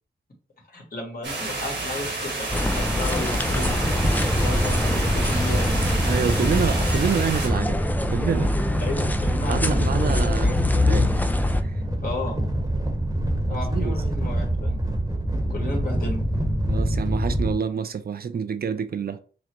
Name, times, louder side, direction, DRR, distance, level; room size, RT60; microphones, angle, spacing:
voice 1, 0.7-4.0 4.4-5.8 8.8-9.8 10.4-10.5 11.0-11.1 12.0-12.4 13.4-14.8 15.5-16.3, left 2 dB, 50° left, 1.6 m, -34 dB
sound 1, 1.2-7.5, right 3 dB, 70° right, 1.4 m, -30 dB
sound 2, 2.5-11.6, left 2 dB, 10° left, 0.4 m, -25 dB
sound 3, 3.5-17.5, right 1 dB, 20° right, 1.0 m, -26 dB
voice 2, 6.0-8.5 9.5-11.3 11.6-11.8 13.5-14.0 16.7-19.2, right 6 dB, 55° right, 0.4 m, -28 dB
6.1 x 2.1 x 3.0 m
cardioid pair, 70°, 19 cm